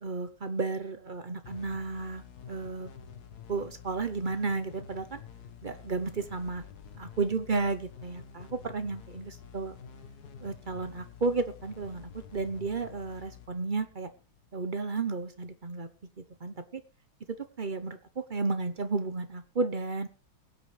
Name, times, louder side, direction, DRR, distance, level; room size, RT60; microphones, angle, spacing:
voice 1, 0.0-2.9 3.5-5.2 5.6-6.6 6.9-9.8 10.4-14.1 14.5-15.9 16.2-16.8 17.6-20.1, right 4 dB, 45° right, 10 dB, 0.6 m, -33 dB
sound 1, 1.4-14.7, left 7 dB, 55° left, 1.6 m, -49 dB
21.5 x 9.0 x 3.3 m, 0.33 s
omnidirectional pair, 2.2 m